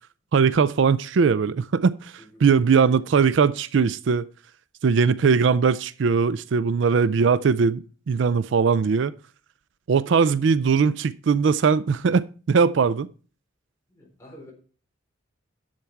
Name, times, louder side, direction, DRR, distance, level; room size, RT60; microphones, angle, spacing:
voice 1, 0.3-2.1 2.4-4.3 4.8-7.8 8.1-9.1 9.9-13.1, right 5 dB, 60° right, 0.4 m, -20 dB
voice 2, 2.2-2.5 2.8-3.3 6.9-7.5 13.9-14.5, equal, 15° left, 4.0 m, -50 dB
10.5 x 7.1 x 4.5 m
head